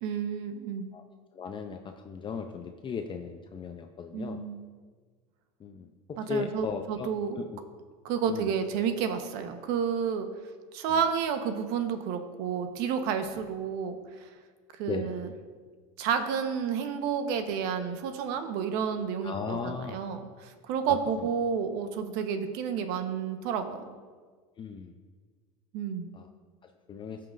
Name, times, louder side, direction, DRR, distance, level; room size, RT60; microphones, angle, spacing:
voice 1, 0.0-0.9 4.1-4.7 6.2-7.4 8.0-10.3 10.7-14.3 14.8-15.3 16.0-24.0 25.7-26.1, right 7 dB, 65° right, 7 dB, 1.0 m, -31 dB
voice 2, 1.3-4.4 5.6-5.9 6.3-7.6 8.3-8.5 10.8-11.0 14.9-15.1 19.2-20.0 20.9-21.3 24.6-24.9 26.1-26.3 26.9-27.2, left 6 dB, 25° left, 5 dB, 0.6 m, -37 dB
17.0 x 5.9 x 2.5 m, 1.5 s
supercardioid pair, 100°, 18 cm